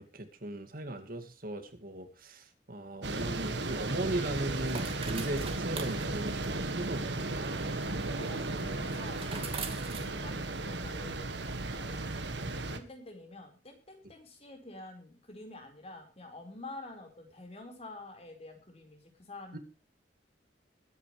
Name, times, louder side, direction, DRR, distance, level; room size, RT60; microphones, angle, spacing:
voice 1, 0.0-7.7 19.5-19.6, right 1 dB, 55° right, 7 dB, 2.3 m, -38 dB
sound 1, 3.0-12.8, right 2 dB, 80° right, 1.8 m, -35 dB
sound 2, 4.0-10.9, right 5 dB, 35° right, 2.4 m, -46 dB
voice 2, 8.1-9.6 10.0-11.3 11.7-12.2 12.5-19.6, left 2 dB, 35° left, 4 dB, 4.6 m, -48 dB
22.0 x 9.8 x 3.3 m, 0.31 s
head